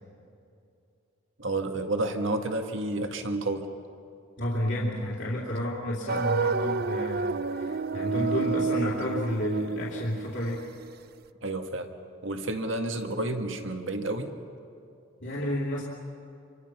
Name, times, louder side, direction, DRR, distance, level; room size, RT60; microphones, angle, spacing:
voice 1, 1.4-3.7 11.4-11.9 12.2-14.3, right 2 dB, 65° right, 5 dB, 1.9 m, -30 dB
voice 2, 4.4-10.6 15.2-15.8, left 1 dB, 60° left, -4 dB, 2.8 m, -31 dB
sound 1, 6.1-10.9, right 4 dB, 45° right, 0.5 m, -30 dB
27.5 x 24.0 x 6.1 m, 2.6 s
head